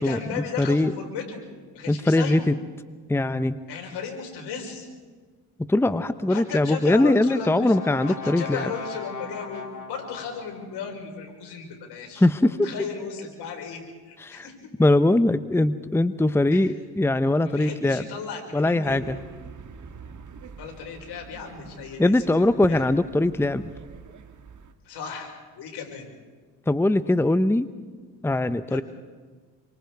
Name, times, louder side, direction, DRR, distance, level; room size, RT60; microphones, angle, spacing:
voice 1, 0.0-1.5 1.7-2.5 3.7-4.9 6.3-7.8 8.1-14.5 16.5-16.7 17.4-19.1 20.6-22.9 24.9-26.1 28.7-28.8, left 6 dB, 75° left, 2 dB, 5.2 m, -36 dB
voice 2, 0.6-0.9 1.9-2.5 3.1-3.5 5.6-8.7 12.2-12.5 14.2-14.5 14.8-18.0 18.5-19.2 22.0-23.7 26.7-27.7 28.2-28.8, left 1 dB, 5° left, 13 dB, 0.9 m, -21 dB
Brass instrument, 6.8-10.9, left 4 dB, 45° left, 3.1 m, -39 dB
sound 1, 18.8-24.7, right 5 dB, 50° right, 2.0 m, -44 dB
27.0 x 24.5 x 4.7 m, 1.5 s
supercardioid pair, 70°, 40 cm